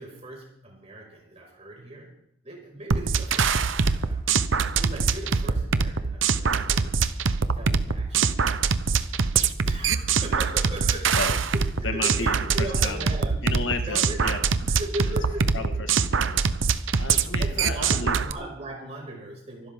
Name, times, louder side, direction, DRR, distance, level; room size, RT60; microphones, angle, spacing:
voice 1, 0.0-2.2 2.4-6.9 7.5-8.8 9.6-14.2 14.6-15.6 17.3-19.7, right 1 dB, 35° right, -1 dB, 5.6 m, -38 dB
sound 1, 2.9-18.3, right 5 dB, 75° right, 0.8 m, -24 dB
voice 2, 11.8-13.1 13.4-14.4 15.0-15.1 15.5-16.6 17.0-18.3, left 3 dB, 75° left, 6 dB, 1.7 m, -33 dB
24.5 x 12.5 x 3.7 m, 0.71 s
head